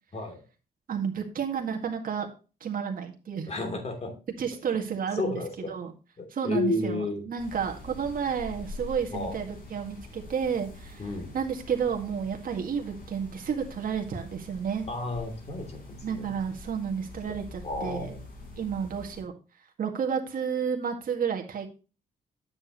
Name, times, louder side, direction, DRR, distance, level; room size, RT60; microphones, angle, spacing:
voice 1, 0.9-2.3 2.6-3.5 4.4-5.3 5.7-5.9 6.3-11.0 11.3-14.9 16.0-18.1 18.6-19.3 19.8-21.7, right 7 dB, 55° right, 2 dB, 1.9 m, -31 dB
voice 2, 3.5-4.1 4.7-4.8 5.1-5.7 6.2-7.2 9.1-9.4 11.0-11.3 14.9-16.3 17.6-18.3, left 2 dB, 40° left, 4 dB, 3.1 m, -32 dB
sound 1, 7.4-19.2, left 2 dB, 60° left, 5.4 m, -45 dB
9.5 x 7.1 x 3.0 m, 0.32 s
wide cardioid pair, 145°, 17 cm